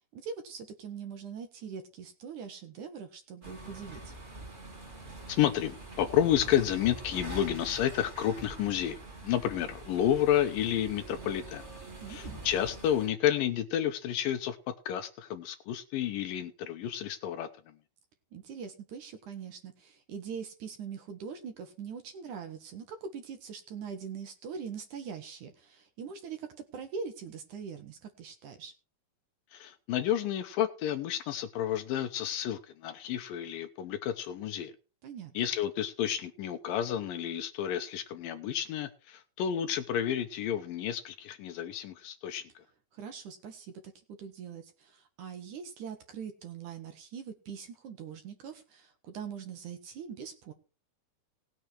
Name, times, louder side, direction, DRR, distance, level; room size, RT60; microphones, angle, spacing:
voice 1, 0.1-4.1 12.0-12.4 18.3-28.7 35.0-35.3 42.9-43.9 44.2-50.5, right 6 dB, 65° right, 7 dB, 2.3 m, -42 dB
sound 1, 3.4-13.1, right 2 dB, 20° right, 2.3 m, -44 dB
voice 2, 5.3-11.6 12.1-14.6 14.9-17.7 29.5-34.7 35.4-42.6, left 10 dB, 75° left, 8 dB, 2.3 m, -30 dB
18.5 x 6.8 x 4.5 m, 0.34 s
omnidirectional pair, 4.5 m